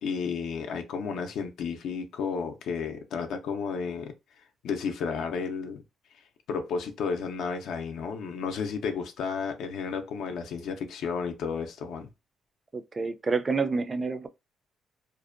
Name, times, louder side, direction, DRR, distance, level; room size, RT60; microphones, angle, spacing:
voice 1, 0.0-4.1 4.6-5.8 6.5-12.1, left 5 dB, 80° left, 0.4 m, -32 dB
voice 2, 12.7-14.3, right 4 dB, 30° right, 0.3 m, -28 dB
2.5 x 2.0 x 2.4 m
cardioid pair, 90°, 0 cm